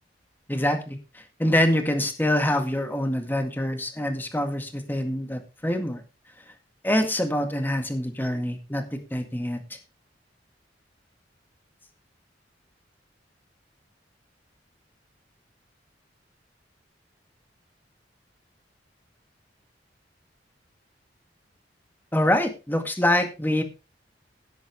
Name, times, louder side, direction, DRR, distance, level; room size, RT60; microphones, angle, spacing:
voice 1, 0.5-6.0 6.8-9.8 22.1-23.6, left 1 dB, 10° left, 6 dB, 1.9 m, -25 dB
17.5 x 8.1 x 3.4 m, 0.28 s
head